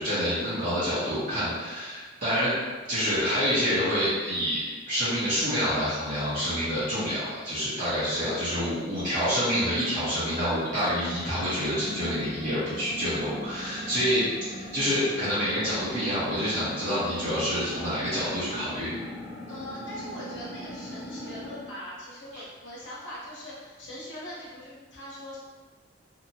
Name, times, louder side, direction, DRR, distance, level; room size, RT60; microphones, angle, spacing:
voice 1, 0.0-2.5 2.9-4.6 4.9-18.9 22.3-22.4, equal, 45° right, -14 dB, 0.9 m, -27 dB
sound 1, 10.8-21.7, equal, ahead, 1.1 m, -40 dB
voice 2, 19.5-25.4, left 1 dB, 85° left, -7 dB, 0.9 m, -41 dB
2.8 x 2.3 x 2.6 m, 1.4 s
head